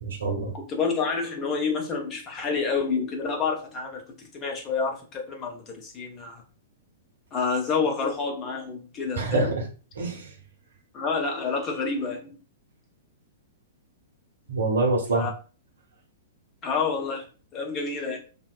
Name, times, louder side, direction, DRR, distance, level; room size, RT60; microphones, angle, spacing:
voice 1, 0.0-0.5 9.2-9.6 10.0-10.3 14.5-15.3, right 2 dB, 65° right, 0 dB, 0.9 m, -25 dB
voice 2, 0.5-6.4 7.3-9.5 10.9-12.4 15.1-15.3 16.6-17.2 17.5-18.2, left 5 dB, 25° left, 1 dB, 0.7 m, -28 dB
2.8 x 2.0 x 2.4 m, 0.36 s
figure-of-eight pair, 105°, 0 cm